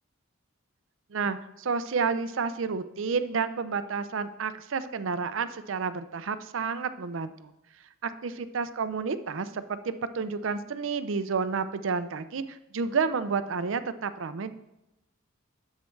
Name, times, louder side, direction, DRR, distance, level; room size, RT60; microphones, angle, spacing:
voice 1, 1.1-7.5 8.0-14.5, right 5 dB, 65° right, 12 dB, 0.5 m, -30 dB
10.5 x 7.4 x 3.2 m, 0.92 s
head